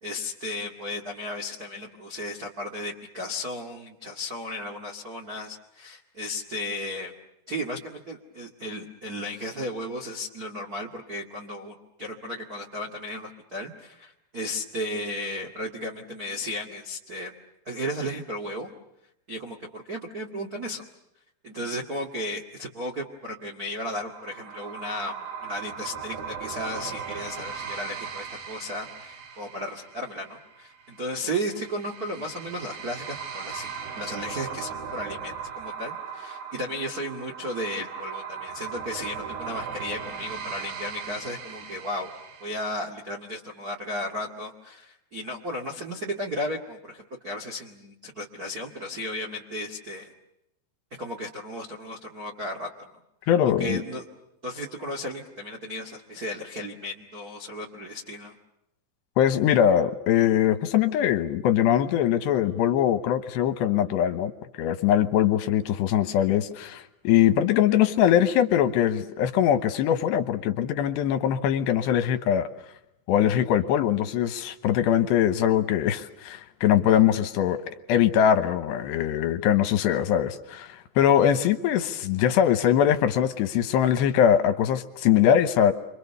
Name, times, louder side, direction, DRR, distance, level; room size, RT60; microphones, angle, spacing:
voice 1, 0.0-7.1 7.5-17.3 17.6-18.7 19.3-20.8 21.4-42.1 42.4-50.1 51.0-52.7 53.4-54.0 54.4-58.3, left 1 dB, 80° right, 0.8 m, -34 dB
sound 1, 24.0-42.7, right 6 dB, 55° right, 3.4 m, -38 dB
voice 2, 53.3-53.8 59.2-64.3 64.6-72.5 73.1-77.6 77.9-85.7, left 10 dB, 75° left, 3.0 m, -22 dB
30.0 x 25.0 x 6.9 m
omnidirectional pair, 5.5 m